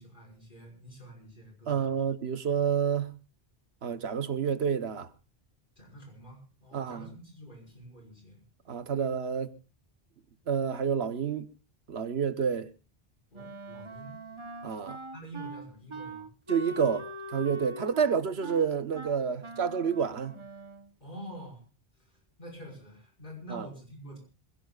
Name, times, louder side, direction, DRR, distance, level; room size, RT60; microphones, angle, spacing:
voice 1, 0.0-2.0 5.8-8.4 13.3-14.2 15.1-16.3 21.0-21.6 22.4-24.2, right 1 dB, 55° left, 5.8 m, -47 dB
voice 2, 1.7-3.1 3.8-5.1 6.7-7.1 8.7-9.5 10.5-11.5 11.9-12.7 14.6-15.0 16.5-20.4 23.5-23.7, right 7 dB, 85° right, 1.3 m, -29 dB
Wind instrument woodwind instrument, 13.3-20.9, right 1 dB, 30° right, 1.0 m, -42 dB
26.0 x 17.0 x 2.4 m
omnidirectional pair, 1.0 m